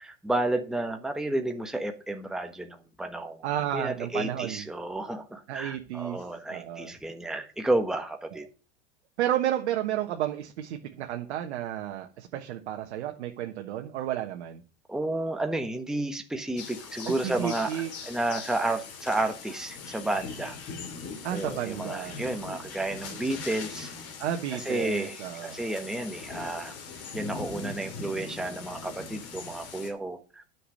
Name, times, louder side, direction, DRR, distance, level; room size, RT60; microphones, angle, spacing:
voice 1, 0.0-3.4 3.7-8.5 14.9-20.6 21.3-23.9 24.5-26.8 27.1-30.4, right 2 dB, ahead, 5 dB, 1.3 m, -31 dB
voice 2, 3.4-4.6 5.5-6.9 9.2-14.6 17.1-17.9 21.2-22.2 24.2-25.6, right 11 dB, 75° right, 4 dB, 1.3 m, -32 dB
sound 1, 16.6-29.9, left 5 dB, 45° left, 2.9 m, -41 dB
10.0 x 6.0 x 6.4 m, 0.35 s
hypercardioid pair, 95°, 33 cm